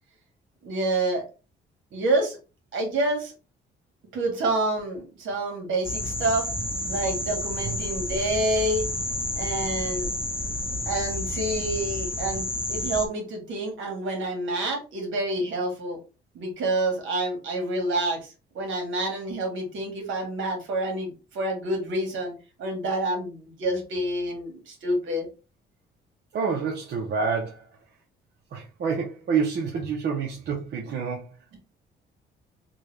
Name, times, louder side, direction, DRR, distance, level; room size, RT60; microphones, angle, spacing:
voice 1, 0.6-1.2 1.9-2.4 2.7-3.3 4.1-6.5 6.9-8.9 9.4-10.1 10.8-16.0 16.3-22.3 22.6-25.3, right 1 dB, 75° right, 1.6 m, -28 dB
sound 1, 5.8-13.1, left 1 dB, 10° left, 0.8 m, -30 dB
voice 2, 26.3-27.6 28.5-31.2, right 5 dB, 60° right, 0.9 m, -28 dB
3.8 x 2.4 x 3.2 m
cardioid pair, 90°, 20 cm